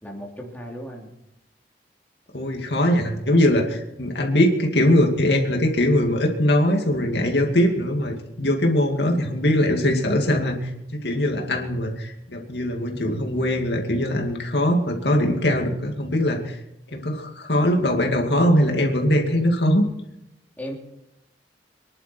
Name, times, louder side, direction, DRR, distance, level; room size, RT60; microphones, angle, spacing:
voice 1, 0.0-1.1 20.6-20.8, equal, 10° left, -1 dB, 2.9 m, -35 dB
voice 2, 2.3-16.6 16.9-19.8, left 1 dB, 70° left, 2 dB, 2.5 m, -21 dB
25.0 x 11.5 x 4.5 m, 0.87 s
head